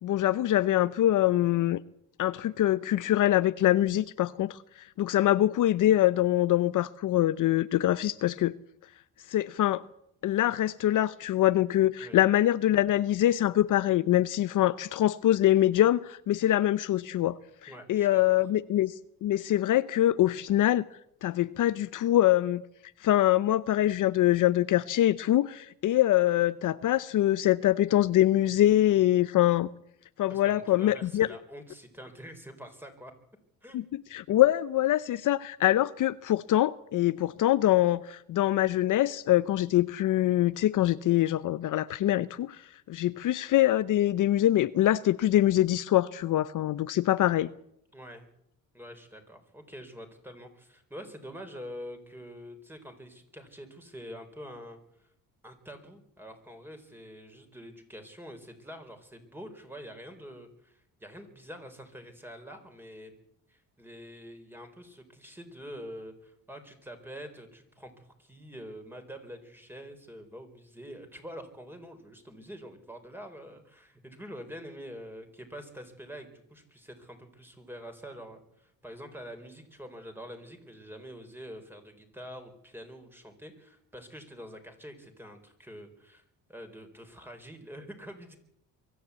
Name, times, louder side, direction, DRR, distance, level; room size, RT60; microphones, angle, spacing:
voice 1, 0.0-1.8 2.2-8.5 9.3-9.8 10.2-20.8 21.2-22.6 23.0-29.7 30.2-31.3 33.7-33.8 34.1-47.5, left 13 dB, 60° left, 0.7 m, -24 dB
voice 2, 17.7-18.4 30.3-33.1 33.6-33.8 47.9-48.3 48.7-55.1 55.4-63.2 63.5-86.2 86.5-88.4, equal, 5° right, 4.0 m, -46 dB
23.5 x 13.5 x 8.2 m
cardioid pair, 120°, 36 cm